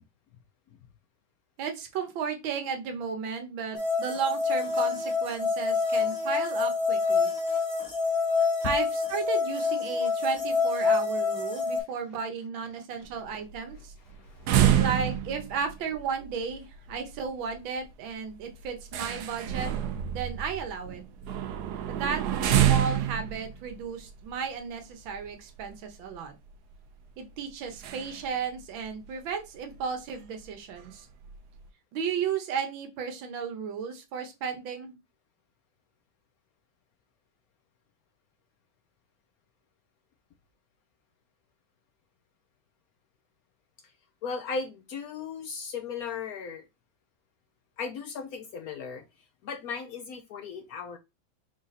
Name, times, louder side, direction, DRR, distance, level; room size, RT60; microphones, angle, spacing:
voice 1, 1.6-7.3 8.6-13.9 14.8-19.7 20.1-21.0 21.9-26.3 27.2-31.1 31.9-35.0, right 6 dB, 90° right, 1.6 m, -34 dB
sound 1, 3.7-11.8, left 4 dB, 20° left, 0.5 m, -27 dB
sound 2, 13.0-25.7 26.1-26.2 26.5-26.7 27.7-28.3 28.6-28.7 29.0-29.1 29.7-29.8 30.1-30.4 30.8-31.5, right 10 dB, 70° right, 1.0 m, -28 dB
voice 2, 14.1-14.8 44.2-46.6 47.8-49.0 49.4-51.0, left 5 dB, 75° left, 0.8 m, -37 dB
4.8 x 2.5 x 4.0 m
omnidirectional pair, 2.1 m